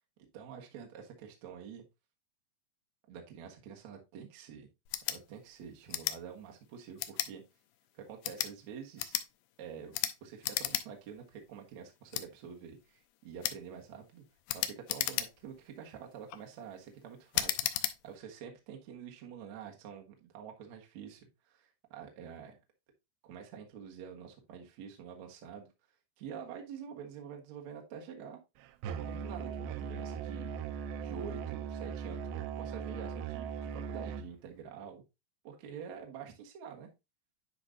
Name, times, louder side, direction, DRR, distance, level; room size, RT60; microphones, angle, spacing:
voice 1, 0.3-1.8 3.1-4.7 5.1-7.4 7.9-9.2 9.6-14.2 14.5-17.7 18.0-22.6 23.2-25.7 26.2-28.4 28.9-30.5 31.0-35.0 35.4-36.9, right 7 dB, 60° right, 1 dB, 2.0 m, -47 dB
sound 1, 4.9-5.2 5.9-6.2 7.0-7.3 8.1-8.5 9.0-9.3 9.9-10.1 10.4-10.9 11.2-11.3 12.1-12.3 13.4-13.6 14.5-15.5 16.1-16.4 17.3-18.0, left 14 dB, 80° left, 2.5 m, -34 dB
Musical instrument, 28.8-34.3, right 7 dB, 85° right, 2.1 m, -39 dB
10.0 x 4.9 x 2.6 m, 0.24 s
omnidirectional pair, 4.9 m